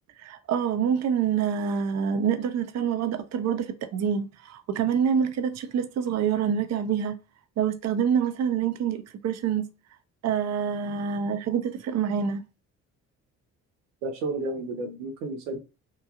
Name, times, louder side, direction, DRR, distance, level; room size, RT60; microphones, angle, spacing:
voice 1, 0.2-7.2 7.6-9.7 10.2-12.4, right 7 dB, 45° right, 0.5 m, -26 dB
voice 2, 14.0-15.6, right 2 dB, 90° right, 0.6 m, -32 dB
3.0 x 2.2 x 2.3 m
hypercardioid pair, 50°, 37 cm